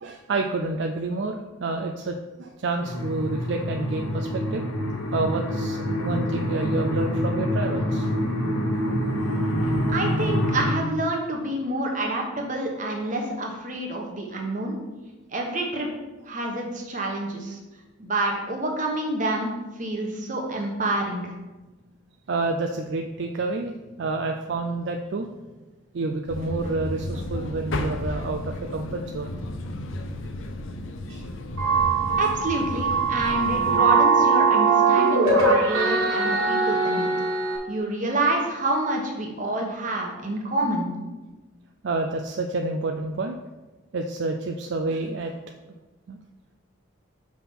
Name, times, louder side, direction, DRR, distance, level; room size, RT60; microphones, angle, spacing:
voice 1, 0.0-4.6 5.1-8.1 22.3-25.3 25.9-29.3 31.1-31.2 41.8-43.4 43.9-45.5 46.1-46.2, right 3 dB, 60° right, 4 dB, 0.4 m, -29 dB
sound 1, 2.8-10.7, left 1 dB, 90° left, 1.0 m, -26 dB
voice 2, 9.9-14.8 15.3-15.9 16.3-17.6 18.0-21.3 32.2-37.1 37.7-40.9, right 2 dB, 40° right, 0 dB, 1.1 m, -28 dB
sound 2, 26.3-33.8, left 2 dB, 70° left, 0.6 m, -33 dB
sound 3, 31.6-37.6, right 4 dB, 90° right, 1.4 m, -21 dB
5.8 x 3.6 x 5.9 m, 1.2 s
head